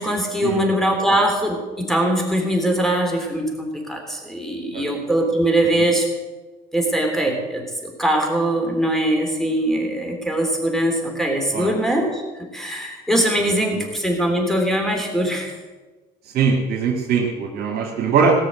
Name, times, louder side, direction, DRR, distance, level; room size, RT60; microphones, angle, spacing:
voice 1, 0.0-6.1 6.7-12.2 12.5-15.5, right 1 dB, ahead, 2 dB, 3.3 m, -21 dB
voice 2, 16.3-18.3, right 5 dB, 65° right, -3 dB, 2.5 m, -21 dB
18.0 x 6.8 x 7.6 m, 1.3 s
cardioid pair, 110°, 17 cm